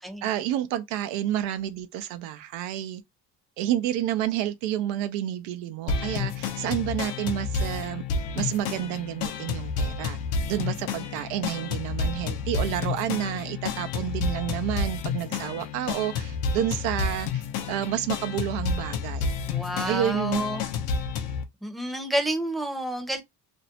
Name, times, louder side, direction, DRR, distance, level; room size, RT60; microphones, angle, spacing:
voice 1, 0.2-3.0 3.6-8.0 8.4-10.2 10.5-17.4 17.7-19.3 19.9-20.4, right 12 dB, 90° right, 0.5 m, -29 dB
sound 1, 5.9-21.4, left 5 dB, 80° left, 0.6 m, -30 dB
voice 2, 19.4-20.7 21.6-23.2, right 1 dB, ahead, 0.6 m, -29 dB
2.6 x 2.0 x 2.7 m
supercardioid pair, 90°, 43 cm